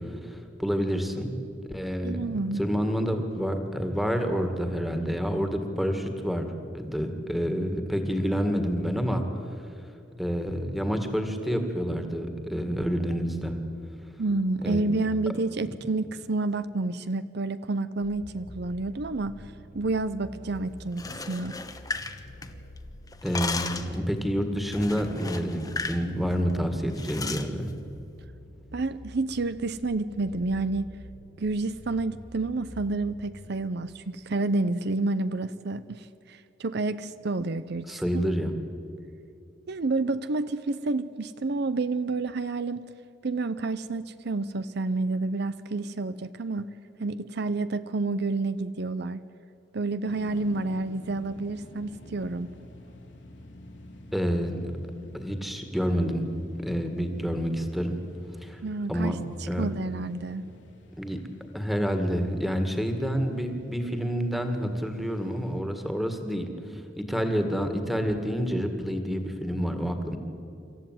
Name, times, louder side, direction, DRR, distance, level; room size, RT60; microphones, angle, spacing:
voice 1, 0.1-1.3 1.7-2.3 2.6-9.2 10.2-13.6 14.6-14.9 23.2-27.7 37.9-38.5 54.1-54.7 55.1-56.2 56.5-58.0 58.4-58.6 58.9-59.2 59.5-59.6 61.0-61.2 61.5-70.2, equal, ahead, 6 dB, 2.0 m, -28 dB
voice 2, 2.0-2.6 14.2-21.6 28.7-30.9 31.4-38.2 39.7-42.9 43.2-46.7 47.0-49.2 49.7-52.5 58.6-60.4, right 3 dB, 60° right, 13 dB, 0.6 m, -29 dB
sound 1, 18.0-33.5, left 1 dB, 50° left, 1.2 m, -47 dB
sound 2, 20.9-22.8 23.1-24.0 24.7-26.0 26.3-26.5 27.0-27.5, left 4 dB, 20° left, 1.1 m, -35 dB
sound 3, 50.0-65.6, left 1 dB, 75° left, 3.2 m, -50 dB
26.5 x 14.0 x 9.2 m, 2.6 s
head